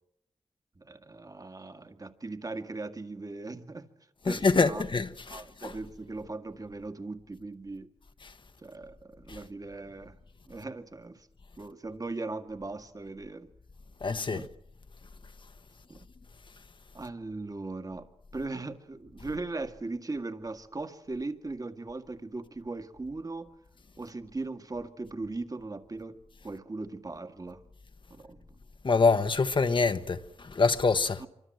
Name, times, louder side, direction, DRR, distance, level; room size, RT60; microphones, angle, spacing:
voice 1, 0.8-3.9 4.2-4.8 5.3-7.9 8.6-10.2 10.5-11.3 11.6-13.5 14.3-14.5 15.9-16.1 16.9-23.5 24.0-27.6 28.1-28.5 31.2-31.3, right 3 dB, 35° right, 2.1 m, -39 dB
voice 2, 4.3-5.7 8.2-8.3 9.3-9.4 14.0-14.5 28.8-31.2, left 4 dB, 50° left, 1.3 m, -26 dB
26.5 x 24.5 x 7.8 m
wide cardioid pair, 90°, 11 cm